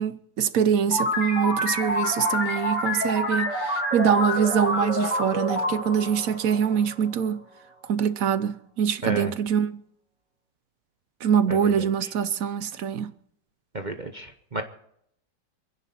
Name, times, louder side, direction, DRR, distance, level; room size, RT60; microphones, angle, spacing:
voice 1, 0.0-7.4 7.9-9.8 11.2-13.1, right 8 dB, 60° right, 1.0 m, -24 dB
sound 1, 0.9-7.2, left 1 dB, 65° left, 5.4 m, -27 dB
voice 2, 11.5-11.9 13.7-14.6, right 2 dB, 35° right, 0.8 m, -32 dB
27.0 x 10.0 x 4.3 m
omnidirectional pair, 2.0 m